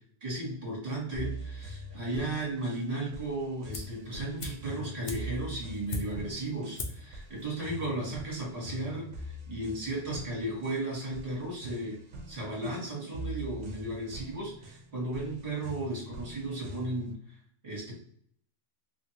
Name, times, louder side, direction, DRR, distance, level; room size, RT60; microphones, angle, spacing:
voice 1, 0.2-12.0 12.3-17.4 17.6-18.0, right 2 dB, 30° right, -4 dB, 1.4 m, -35 dB
sound 1, 1.1-17.2, right 1 dB, 80° right, 0.9 m, -43 dB
sound 2, 3.7-4.0 4.4-6.4 6.7-7.1 7.4-7.5, left 3 dB, 60° left, 0.8 m, -38 dB
3.0 x 2.6 x 2.8 m, 0.64 s
omnidirectional pair, 1.3 m